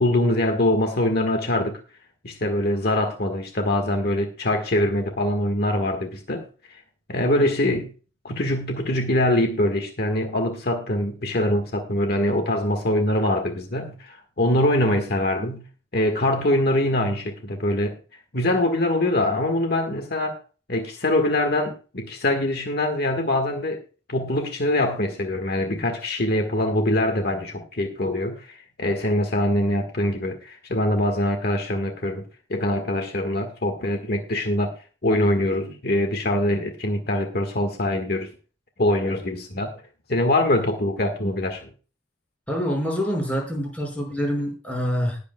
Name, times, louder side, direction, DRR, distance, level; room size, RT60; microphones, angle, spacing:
voice 1, 0.0-1.8 2.2-6.8 7.1-7.9 8.2-15.6 15.9-18.0 18.3-20.4 20.7-23.8 24.1-32.2 32.5-34.7 35.0-38.3 38.8-39.7 40.1-41.7, left 1 dB, 55° left, 1.6 m, -23 dB
voice 2, 42.5-45.2, equal, 5° left, 5.5 m, -26 dB
20.0 x 8.3 x 2.2 m
head